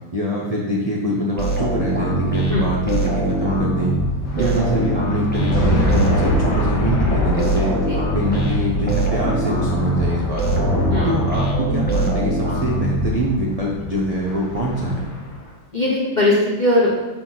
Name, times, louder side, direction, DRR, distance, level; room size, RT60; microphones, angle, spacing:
voice 1, 0.1-3.9 4.3-7.8 8.1-10.7 11.0-15.1, equal, 55° right, -4 dB, 0.4 m, -24 dB
sound 1, 1.4-13.6, right 1 dB, 5° left, 0.8 m, -23 dB
sound 2, 2.0-15.5, left 1 dB, 85° left, 1.9 m, -26 dB
voice 2, 15.7-16.9, left 1 dB, 35° left, -5 dB, 0.7 m, -19 dB
6.2 x 5.0 x 3.9 m, 1.1 s
omnidirectional pair, 2.1 m